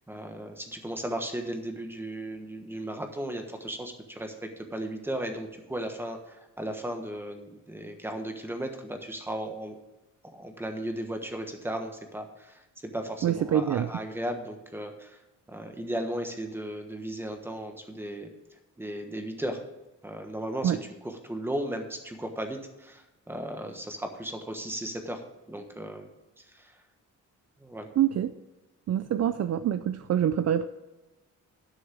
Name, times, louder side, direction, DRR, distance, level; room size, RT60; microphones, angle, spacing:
voice 1, 0.1-9.8 10.3-15.2 15.5-18.3 18.8-19.6 20.0-25.2 25.5-26.1 26.5-26.7 27.6-27.9, right 1 dB, 5° right, 5 dB, 1.2 m, -36 dB
voice 2, 13.2-13.9 20.6-20.8 28.0-28.3 28.9-30.7, right 10 dB, 55° right, 12 dB, 0.5 m, -25 dB
11.5 x 6.3 x 6.2 m, 1.0 s
wide cardioid pair, 165°, 32 cm